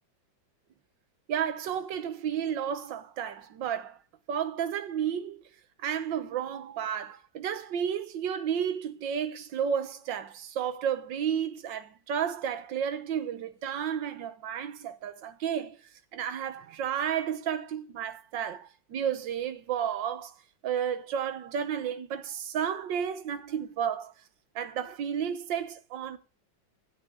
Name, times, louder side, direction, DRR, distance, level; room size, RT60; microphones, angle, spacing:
voice 1, 1.3-4.0 4.3-5.4 5.8-15.8 16.1-20.3 20.6-24.1 24.5-26.2, right 8 dB, 70° right, 1.7 m, -32 dB
16.0 x 7.7 x 4.0 m
omnidirectional pair, 2.1 m